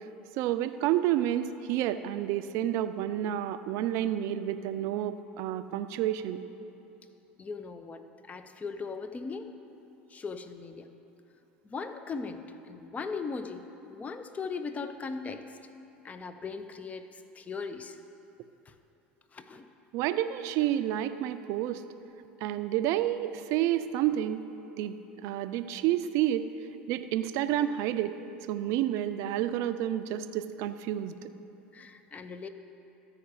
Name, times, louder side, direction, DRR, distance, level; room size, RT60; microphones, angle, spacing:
voice 1, 0.4-6.4 19.9-21.8 22.4-24.4 24.8-26.5 26.9-28.2 28.5-31.3, right 12 dB, 60° right, 11 dB, 0.4 m, -29 dB
voice 2, 7.4-9.5 10.1-10.9 11.6-13.6 13.9-15.6 16.0-18.0 18.7-18.8 19.3-19.7 31.7-32.5, left 4 dB, 25° left, 8 dB, 0.6 m, -39 dB
14.0 x 4.9 x 4.8 m, 2.8 s
hypercardioid pair, 75°, 6 cm